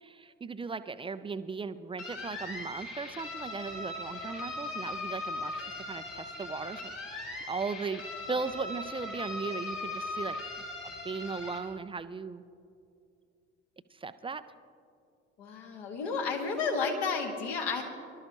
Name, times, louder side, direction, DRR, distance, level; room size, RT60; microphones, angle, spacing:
voice 1, 0.0-10.4 11.0-12.4 13.9-14.5, right 4 dB, 15° right, 12 dB, 0.4 m, -37 dB
sound 1, 2.0-11.6, left 2 dB, 80° left, 1.8 m, -39 dB
voice 2, 15.4-17.8, left 4 dB, 65° left, 1 dB, 1.9 m, -32 dB
23.5 x 12.5 x 3.0 m, 2.5 s
figure-of-eight pair, 50°, 36 cm